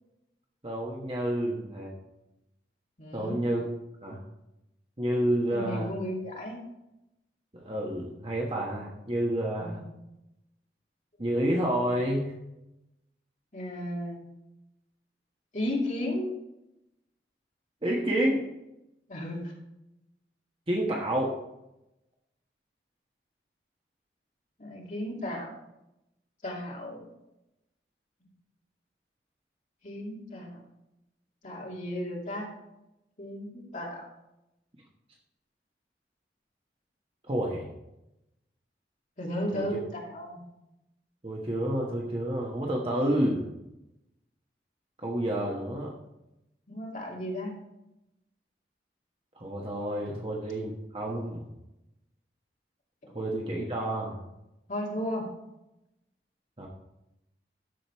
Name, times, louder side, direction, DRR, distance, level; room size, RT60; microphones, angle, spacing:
voice 1, 0.6-1.9 3.1-3.7 4.0-4.2 5.0-5.9 7.5-9.8 11.2-12.3 17.8-18.4 20.7-21.3 37.3-37.7 39.5-39.6 41.2-43.4 45.0-45.9 49.4-51.4 53.1-54.2 56.6-56.7, right 1 dB, 30° right, -2 dB, 1.2 m, -29 dB
voice 2, 3.0-3.4 5.5-6.6 9.6-9.8 13.5-14.2 15.5-16.3 19.1-19.5 24.6-25.6 26.4-27.0 29.8-30.6 31.4-32.5 33.2-34.1 39.2-40.4 46.7-47.5 50.1-50.2 53.0-53.1 54.7-55.3, equal, 45° left, -3 dB, 2.5 m, -34 dB
13.0 x 5.1 x 4.6 m, 0.90 s
head